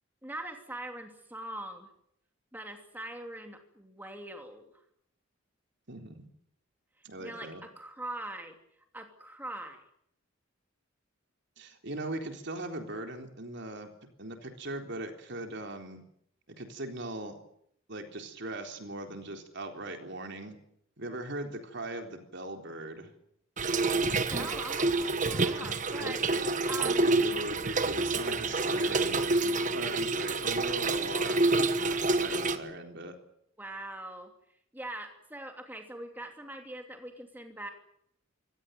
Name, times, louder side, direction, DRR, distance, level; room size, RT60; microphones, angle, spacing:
voice 1, 0.2-1.9 2.5-4.8 7.2-8.6 8.9-9.8 24.1-26.2 26.7-27.0 33.6-34.3 34.7-37.7, right 1 dB, 10° right, 4 dB, 2.8 m, -42 dB
voice 2, 5.9-6.3 7.0-7.6 11.6-13.9 14.2-16.0 16.5-17.4 17.9-20.6 21.0-23.1 26.0-26.6 26.8-33.1, right 1 dB, 60° right, 4 dB, 3.9 m, -39 dB
Trickle dribble / Fill (with liquid), 23.6-32.6, right 3 dB, 40° right, 1.3 m, -28 dB
25.0 x 17.5 x 9.4 m, 0.72 s
head